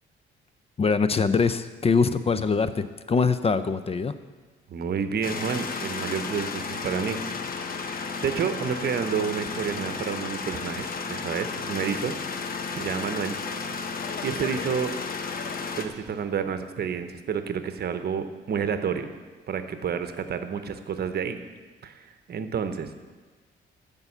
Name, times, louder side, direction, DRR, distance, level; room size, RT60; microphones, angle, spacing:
voice 1, 0.8-4.1, left 5 dB, 30° left, 12 dB, 0.5 m, -23 dB
voice 2, 4.7-7.2 8.2-12.2 12.7-13.4 14.2-14.9 15.8-19.1 19.5-21.4 21.8-22.9, right 7 dB, 55° right, 9 dB, 0.9 m, -29 dB
sound 1, 5.2-15.9, left 5 dB, 45° left, 1.0 m, -33 dB
12.5 x 5.4 x 7.2 m, 1.3 s
cardioid pair, 90°, 20 cm